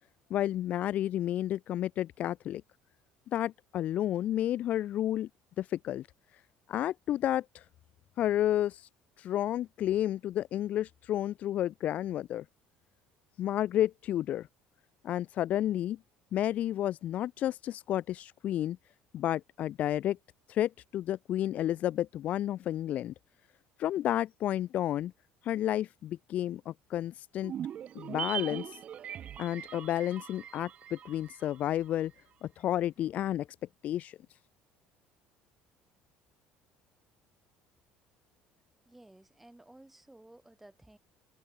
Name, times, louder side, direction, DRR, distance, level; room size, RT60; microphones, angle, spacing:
voice 1, 0.3-2.6 3.3-5.3 5.6-6.1 6.7-7.6 8.2-8.9 9.2-12.4 13.4-14.5 15.0-16.0 16.3-18.8 19.1-20.2 20.5-23.1 23.8-25.1 25.4-27.5 27.9-28.7 29.4-32.1 32.4-33.5 33.8-34.2, left 12 dB, 50° left, 1.4 m, -31 dB
sound 1, 27.4-31.9 32.2-32.3, right 9 dB, 40° right, 7.5 m, -41 dB
voice 2, 38.8-41.0, right 1 dB, 5° right, 6.8 m, -55 dB
open air
cardioid pair, 135°, 3 cm